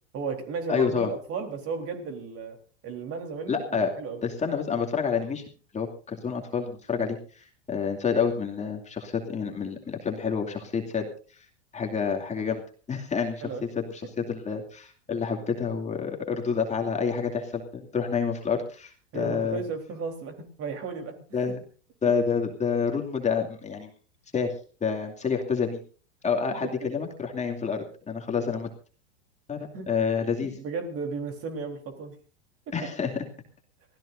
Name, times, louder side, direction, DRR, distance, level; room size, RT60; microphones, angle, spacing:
voice 1, 0.1-2.6 2.8-4.2 13.4-13.6 19.1-21.5 29.6-29.9 30.4-32.2 32.7-32.8, right 5 dB, 40° right, 5 dB, 3.8 m, -35 dB
voice 2, 0.7-1.1 3.5-3.9 4.2-5.4 5.7-11.1 11.3-11.5 11.7-12.6 12.9-13.5 13.8-19.6 21.3-21.6 22.0-23.9 24.3-24.5 24.8-25.8 26.2-28.7 29.5-30.5 32.7-33.2, left 6 dB, 20° left, 2 dB, 2.5 m, -28 dB
25.0 x 16.0 x 2.7 m, 0.38 s
hypercardioid pair, 110°, 37 cm